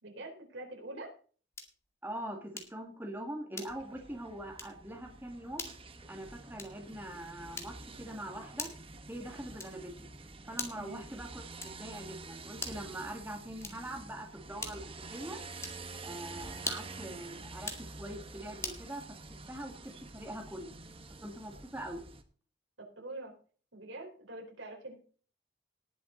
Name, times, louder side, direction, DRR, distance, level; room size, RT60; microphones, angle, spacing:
voice 1, 0.0-1.1 10.8-11.0 22.8-23.3 23.7-24.9, right 2 dB, 80° right, 1 dB, 4.3 m, -45 dB
sound 1, 1.5-1.9 2.6-2.9 3.5-4.0 4.5-4.8 5.5-5.8 6.5-6.9 7.5-8.0 8.6-8.9 9.6-9.9 10.5-11.0 11.6-11.9 12.5-12.9 13.6-14.0 14.6-15.0 15.6-15.9 16.6-17.0 17.6-17.9 18.6-18.9, left 3 dB, 15° left, 2.1 m, -42 dB
voice 2, 2.0-5.6 6.1-8.7 9.1-10.1 10.4-15.4 16.0-19.0 19.5-20.8 21.2-22.0, right 1 dB, 10° right, 1 dB, 2.0 m, -43 dB
sound 2, 3.7-22.2, right 3 dB, 30° right, 1.2 m, -48 dB
19.0 x 7.6 x 3.9 m, 0.41 s
head